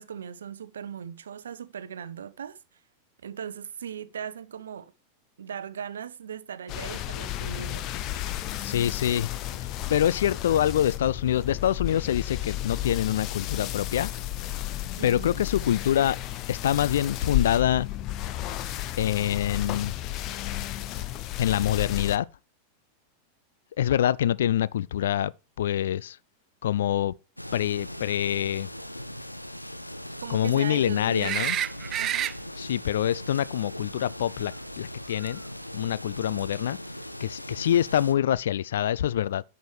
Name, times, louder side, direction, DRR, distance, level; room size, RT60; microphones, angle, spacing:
voice 1, 0.0-2.6 3.2-4.9 5.4-7.9 15.0-15.4 30.2-31.4 32.0-32.3, right 8 dB, 65° right, 0.7 m, -38 dB
sound 1, 6.7-22.2, left 14 dB, 40° left, 0.7 m, -33 dB
voice 2, 8.6-9.3 9.6-14.1 15.0-16.2 16.5-17.9 19.0-19.9 21.4-22.3 23.8-25.3 25.6-26.2 26.6-27.1 27.5-28.7 30.3-31.6 32.6-35.4 35.7-36.8 37.2-39.4, left 11 dB, 60° left, 0.3 m, -25 dB
sound 2, 27.4-38.1, left 1 dB, 90° left, 0.7 m, -40 dB
sound 3, 31.2-32.3 35.2-35.3, right 11 dB, 30° right, 0.4 m, -28 dB
10.5 x 6.2 x 3.3 m
figure-of-eight pair, 90°, 0 cm